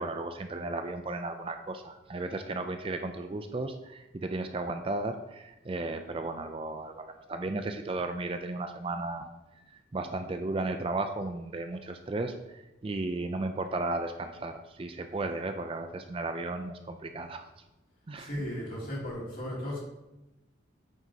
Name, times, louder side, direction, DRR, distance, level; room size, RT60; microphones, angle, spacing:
voice 1, 0.0-9.3 9.7-17.5 18.1-18.3, right 2 dB, 30° right, 7 dB, 0.4 m, -35 dB
voice 2, 18.2-19.8, equal, 45° left, -5 dB, 2.7 m, -35 dB
9.0 x 5.9 x 2.8 m, 0.98 s
head